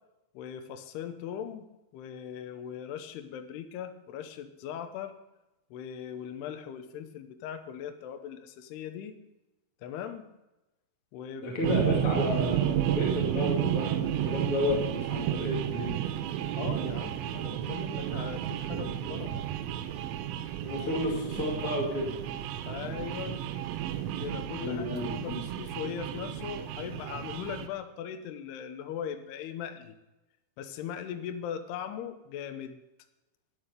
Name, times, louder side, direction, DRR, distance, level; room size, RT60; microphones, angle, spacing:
voice 1, 0.3-1.7 1.9-5.1 5.7-9.1 9.8-10.2 11.1-11.7 16.5-19.5 22.7-23.4 24.2-30.0 30.6-32.8, left 9 dB, 75° left, 8 dB, 2.7 m, -39 dB
voice 2, 11.4-16.0 20.6-22.1 24.6-25.4, left 1 dB, 40° left, -2 dB, 2.3 m, -31 dB
sound 1, 11.6-27.7, right 11 dB, 80° right, 2.9 m, -32 dB
11.5 x 11.0 x 6.7 m, 0.99 s
omnidirectional pair, 5.4 m